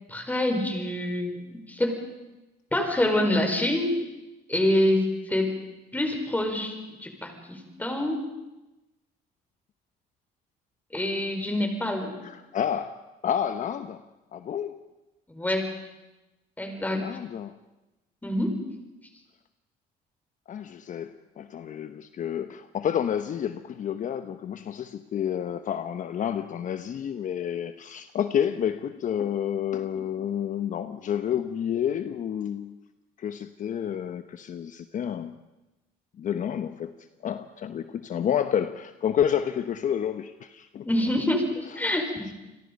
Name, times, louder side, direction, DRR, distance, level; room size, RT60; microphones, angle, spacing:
voice 1, 0.1-2.0 2.7-4.0 4.5-5.6 5.9-6.7 7.0-8.3 10.9-12.1 15.3-15.7 16.6-17.1 18.2-18.6 40.9-42.3, left 1 dB, 10° left, 4 dB, 5.1 m, -26 dB
voice 2, 12.2-13.0 13.2-14.0 14.3-14.8 16.9-17.5 20.5-32.8 33.2-35.4 36.2-40.9 41.7-42.0 42.2-42.3, left 9 dB, 50° left, 10 dB, 1.0 m, -30 dB
29.0 x 22.0 x 5.4 m, 1.0 s
cardioid pair, 110°, 17 cm